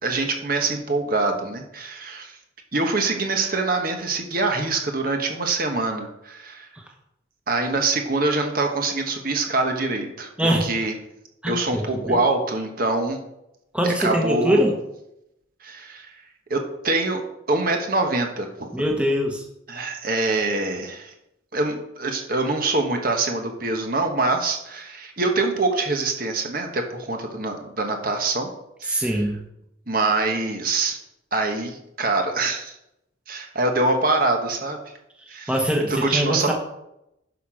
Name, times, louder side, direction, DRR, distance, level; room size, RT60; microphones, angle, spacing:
voice 1, 0.0-2.4 2.7-6.7 7.5-10.9 11.5-13.2 13.8-14.6 15.6-16.1 16.5-16.6 16.8-17.2 17.5-18.7 19.7-21.1 21.5-28.5 28.8-29.2 29.9-31.0 31.3-32.7 33.3-34.8 35.3-35.6 35.9-36.5, right 3 dB, 45° right, 3 dB, 1.3 m, -24 dB
voice 2, 10.4-10.7 11.4-12.2 13.7-14.7 18.7-19.4 28.9-29.4 35.5-36.5, equal, 5° right, 1 dB, 1.2 m, -22 dB
11.0 x 5.9 x 5.0 m, 0.84 s
head